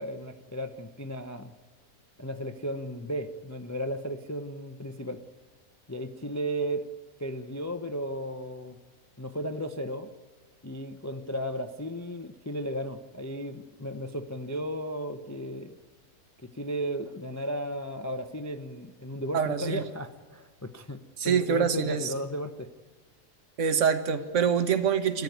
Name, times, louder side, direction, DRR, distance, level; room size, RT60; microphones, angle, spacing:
voice 1, 0.0-1.5 2.2-5.2 5.9-6.9 7.2-8.8 9.2-10.1 10.6-15.8 16.4-22.7, equal, 20° left, 7 dB, 0.5 m, -35 dB
voice 2, 19.3-19.8 21.2-22.1 23.6-25.2, right 7 dB, 55° right, 9 dB, 1.5 m, -25 dB
26.0 x 14.0 x 9.3 m, 1.4 s
omnidirectional pair, 1.6 m